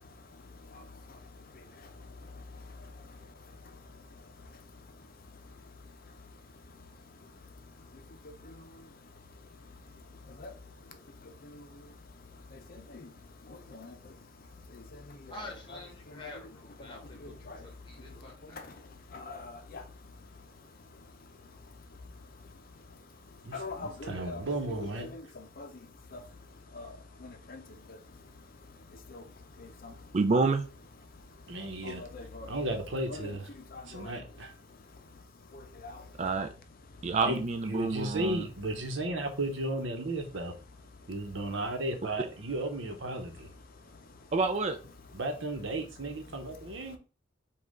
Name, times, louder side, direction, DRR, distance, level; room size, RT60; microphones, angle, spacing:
voice 1, 15.3-18.7, left 2 dB, 25° left, 1.4 m, -47 dB
voice 2, 17.2-17.6 19.1-19.8 23.5-24.4 24.7-25.2 25.6-25.7 26.8-26.9 27.2-27.6 29.1-29.2 29.8-29.9 31.8-32.5 33.1-33.3 33.7-34.1 35.8-35.9, left 3 dB, 50° left, 0.6 m, -42 dB
voice 3, 23.4-25.1 31.5-32.0 32.5-33.5 33.9-34.5 37.2-40.5 41.1-43.5 45.1-47.0, right 1 dB, 80° right, 0.9 m, -34 dB
voice 4, 30.1-30.7 36.2-36.5 37.0-38.5 44.3-44.8, right 3 dB, 35° right, 0.4 m, -28 dB
5.2 x 2.4 x 3.7 m
head